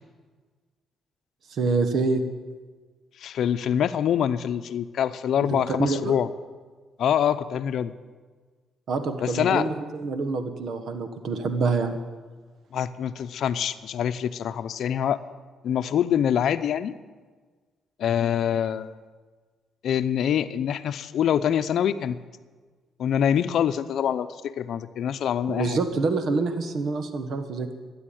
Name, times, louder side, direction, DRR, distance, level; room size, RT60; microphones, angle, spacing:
voice 1, 1.5-2.2 5.5-6.1 8.9-12.0 25.5-27.7, right 4 dB, 65° right, 8 dB, 1.4 m, -26 dB
voice 2, 3.2-6.3 7.0-7.9 9.2-9.7 12.7-15.2 15.6-16.9 18.0-18.9 19.8-22.2 23.0-25.8, left 9 dB, 70° left, 11 dB, 0.7 m, -25 dB
12.5 x 9.4 x 9.4 m, 1.4 s
cardioid pair, 90°, 0 cm